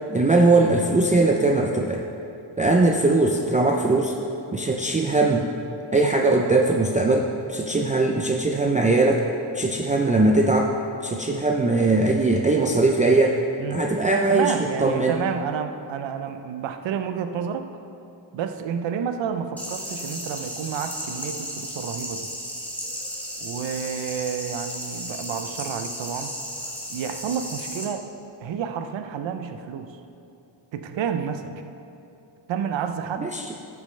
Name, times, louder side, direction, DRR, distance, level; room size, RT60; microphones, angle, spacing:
voice 1, 0.1-2.0 2.6-4.1 4.5-5.5 5.9-9.3 9.5-10.7 11.0-13.4 13.7-14.5 14.8-15.2 33.2-33.4, right 2 dB, 15° right, 1 dB, 0.4 m, -20 dB
voice 2, 14.3-17.7 18.3-22.3 23.4-26.3 26.9-28.1 28.4-30.0 30.7-31.5 32.5-33.3, right 7 dB, 70° right, 7 dB, 0.7 m, -30 dB
sound 1, 19.6-27.9, equal, 5° left, 1.5 m, -34 dB
13.5 x 6.9 x 3.3 m, 2.7 s
cardioid pair, 100°, 47 cm